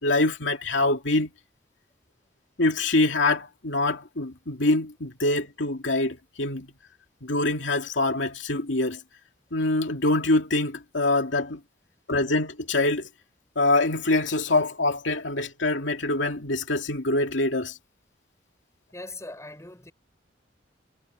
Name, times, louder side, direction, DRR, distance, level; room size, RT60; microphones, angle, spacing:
voice 1, 0.0-1.3 2.6-6.7 7.2-9.0 9.5-11.6 12.1-13.1 13.6-17.8, left 2 dB, 90° left, 2.5 m, -24 dB
voice 2, 18.9-19.9, left 2 dB, 15° left, 6.6 m, -40 dB
head